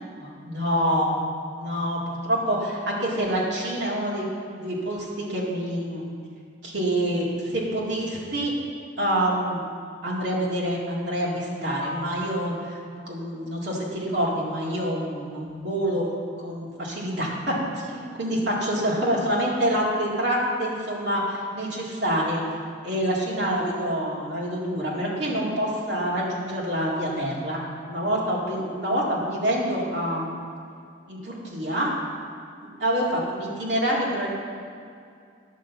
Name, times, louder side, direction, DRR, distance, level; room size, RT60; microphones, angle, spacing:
voice 1, 0.2-1.2 1.6-4.3 4.6-6.1 6.6-8.5 9.0-9.6 10.0-12.8 13.1-16.0 16.4-22.4 22.8-27.6 27.9-30.4 31.1-32.0 32.8-34.3, equal, 70° right, -5 dB, 2.0 m, -26 dB
10.5 x 5.3 x 7.2 m, 2.3 s
head